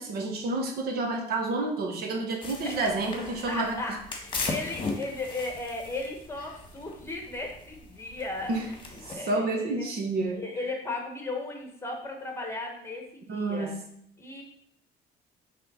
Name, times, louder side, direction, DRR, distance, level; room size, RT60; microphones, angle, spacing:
voice 1, 0.0-4.0 8.5-8.6 9.0-10.4 13.3-13.8, right 2 dB, 65° right, 2 dB, 1.3 m, -29 dB
sound 1, 2.4-9.1, left 3 dB, 30° left, 1.5 m, -38 dB
voice 2, 3.5-8.8 9.1-9.5 9.8-9.9 10.4-13.8 14.2-14.4, left 2 dB, 15° left, 2 dB, 1.5 m, -36 dB
5.6 x 3.6 x 5.6 m, 0.68 s
cardioid pair, 110°, 17 cm